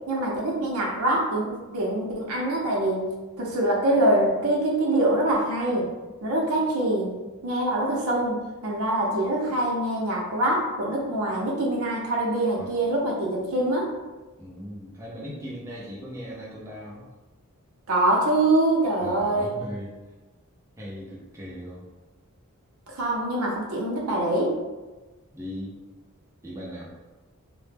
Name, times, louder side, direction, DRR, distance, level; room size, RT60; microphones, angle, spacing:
voice 1, 0.1-5.9 6.2-7.1 7.4-13.9 17.9-19.5 22.9-24.5, right 1 dB, 75° right, -2 dB, 0.6 m, -24 dB
voice 2, 14.4-17.0 19.0-19.9 20.8-21.9 25.3-25.8 26.4-27.0, equal, 15° right, -5 dB, 0.4 m, -38 dB
2.1 x 2.0 x 3.2 m, 1.2 s
head